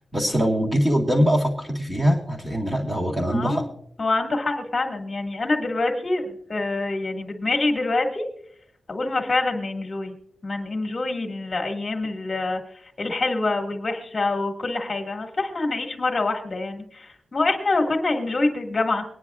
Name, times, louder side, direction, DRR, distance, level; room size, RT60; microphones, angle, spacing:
voice 1, 0.1-3.6, equal, 10° right, -1 dB, 2.1 m, -22 dB
voice 2, 3.3-3.7 4.0-8.2 8.9-10.1 10.4-12.6 13.0-19.0, left 2 dB, 30° left, 2 dB, 1.9 m, -25 dB
24.0 x 9.9 x 2.4 m, 0.67 s
wide cardioid pair, 145°, 0 cm